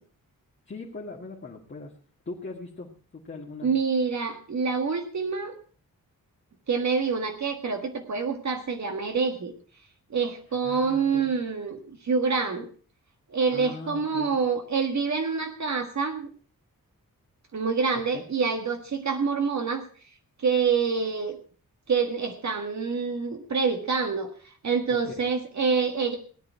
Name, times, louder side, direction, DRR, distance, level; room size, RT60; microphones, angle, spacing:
voice 1, 0.7-1.9 2.3-3.7 10.5-11.2 13.5-14.3 18.1-18.2 25.1-25.2, left 3 dB, 30° left, -3 dB, 2.0 m, -40 dB
voice 2, 3.6-5.5 6.7-9.5 10.1-12.7 13.3-16.3 17.5-19.8 20.4-21.4 21.9-26.2, right 5 dB, 55° right, 5 dB, 1.7 m, -26 dB
17.5 x 10.5 x 4.5 m, 0.41 s
wide cardioid pair, 175°, 35 cm